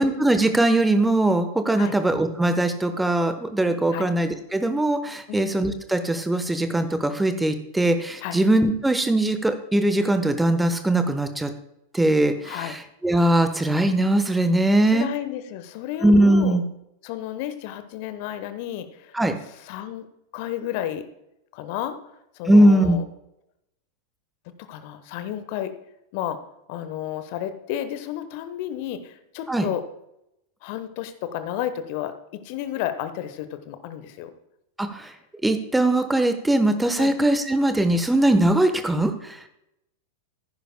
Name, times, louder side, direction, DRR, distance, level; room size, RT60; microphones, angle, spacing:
voice 1, 0.0-11.5 11.9-15.1 16.0-16.6 19.1-19.3 22.5-23.0 29.5-29.7 34.8-35.1 35.4-39.4, right 1 dB, 5° right, 9 dB, 1.0 m, -20 dB
voice 2, 12.4-12.7 14.9-16.6 17.0-19.2 19.6-20.1 20.3-21.0 21.5-22.0 22.4-23.0 24.6-25.7 26.1-26.4 26.7-29.8 30.6-34.3 37.0-37.1, left 11 dB, 45° left, 11 dB, 1.0 m, -32 dB
14.5 x 10.5 x 2.2 m, 0.85 s
figure-of-eight pair, 90°, 0 cm